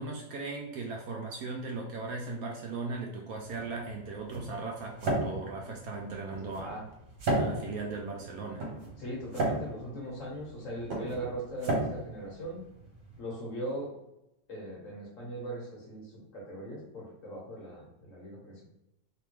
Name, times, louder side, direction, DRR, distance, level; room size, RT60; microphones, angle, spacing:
voice 1, 0.0-6.7 7.4-8.6, right 3 dB, 70° right, 0 dB, 1.0 m, -38 dB
sound 1, 3.3-13.2, right 1 dB, 50° right, 1.2 m, -35 dB
voice 2, 9.0-12.6 13.2-13.9 14.5-18.7, right 1 dB, 50° left, -3 dB, 1.4 m, -39 dB
3.5 x 2.9 x 3.1 m, 0.89 s
omnidirectional pair, 1.8 m